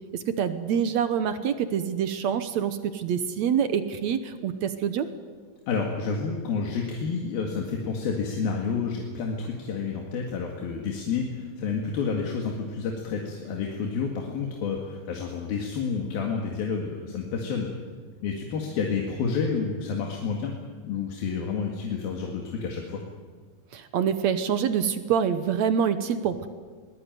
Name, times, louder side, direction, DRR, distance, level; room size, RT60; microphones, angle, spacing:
voice 1, 0.1-5.1 23.7-26.5, right 8 dB, 65° right, 11 dB, 1.9 m, -26 dB
voice 2, 5.7-17.7 18.2-20.5 20.8-23.0, left 5 dB, 85° left, 1 dB, 3.9 m, -29 dB
22.5 x 19.0 x 9.3 m, 1.5 s
omnidirectional pair, 4.2 m